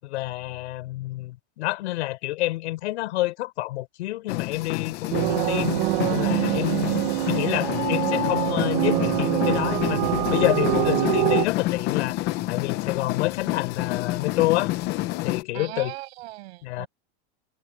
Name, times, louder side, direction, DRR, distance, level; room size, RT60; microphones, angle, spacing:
voice 1, 0.0-5.7 6.1-7.0 7.3-14.7 15.2-15.9 16.6-16.9, left 18 dB, 85° left, 5.4 m, -28 dB
sound 1, 4.3-15.4, left 17 dB, 30° left, 0.7 m, -28 dB
sound 2, 5.1-11.5, right 21 dB, 55° right, 0.9 m, -24 dB
voice 2, 15.5-16.9, right 19 dB, 70° right, 7.4 m, -38 dB
supercardioid pair, 180°, 33 cm